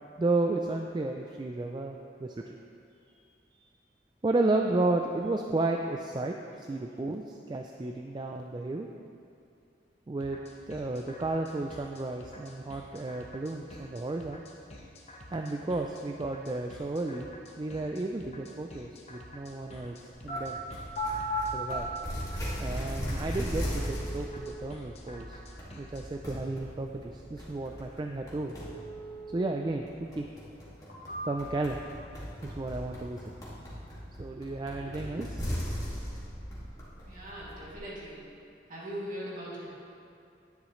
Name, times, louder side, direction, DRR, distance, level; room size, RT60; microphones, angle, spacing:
voice 1, 0.2-2.3 4.2-8.9 10.1-10.4 10.7-14.4 15.3-17.3 17.6-20.0 20.2-20.6 21.5-21.9 22.6-25.4 25.8-28.5 29.3-30.3 31.3-31.8 32.4-33.2 34.2-35.4, right 2 dB, 25° right, 3 dB, 0.3 m, -32 dB
sound 1, 10.2-26.1, left 1 dB, 35° left, 0.9 m, -50 dB
sound 2, 20.3-20.4 20.9-21.8 22.8-22.9 23.6-24.6 28.6-29.6 30.0-30.1 30.7-31.6 32.0-32.7 33.0-33.6, left 1 dB, 60° left, 2.3 m, -38 dB
sound 3, 20.4-37.8, equal, 20° left, 2.0 m, -39 dB
voice 2, 37.0-38.2 38.7-39.7, equal, 45° right, -7 dB, 2.5 m, -40 dB
10.5 x 10.0 x 3.2 m, 2.5 s
head